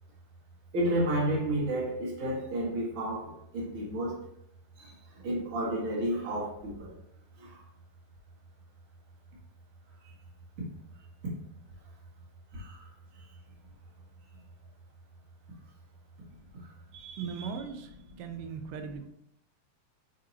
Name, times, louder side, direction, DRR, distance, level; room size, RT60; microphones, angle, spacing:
voice 1, 0.7-4.2 4.8-6.9 7.4-7.6 12.5-12.9, right 1 dB, 45° right, -4 dB, 2.2 m, -31 dB
voice 2, 16.9-19.1, right 6 dB, 90° right, 6 dB, 2.3 m, -39 dB
7.0 x 4.9 x 2.8 m, 0.75 s
omnidirectional pair, 3.7 m